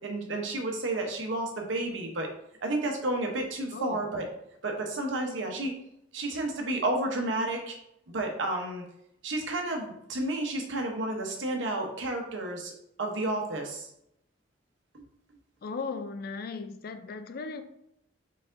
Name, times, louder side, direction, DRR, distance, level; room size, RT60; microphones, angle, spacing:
voice 1, 0.0-2.3 2.6-4.2 4.6-5.7 6.1-7.8 8.1-8.8 9.2-12.7 13.0-13.9 14.9-15.0, right 2 dB, 85° right, 2 dB, 0.9 m, -31 dB
voice 2, 3.7-4.0 15.6-17.6, left 4 dB, 50° left, 9 dB, 0.4 m, -37 dB
4.3 x 4.1 x 2.6 m, 0.78 s
head